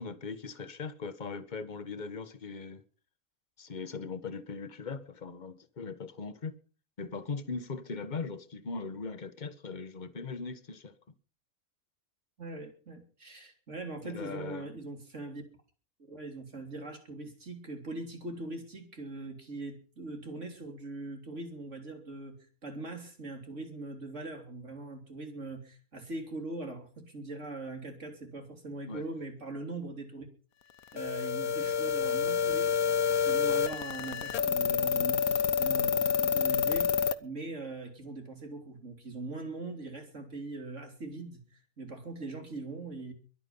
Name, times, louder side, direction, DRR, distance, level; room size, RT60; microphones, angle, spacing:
voice 1, 0.0-2.8 3.6-6.5 7.0-10.9 14.0-14.7 28.9-29.0, left 4 dB, 35° left, 1.3 m, -39 dB
voice 2, 12.4-15.4 16.1-30.3 30.9-32.7 33.2-37.0 37.2-43.1, right 2 dB, 55° right, 3.9 m, -41 dB
sound 1, 31.0-37.1, left 7 dB, 85° left, 1.4 m, -28 dB
22.5 x 9.2 x 5.7 m
omnidirectional pair, 1.5 m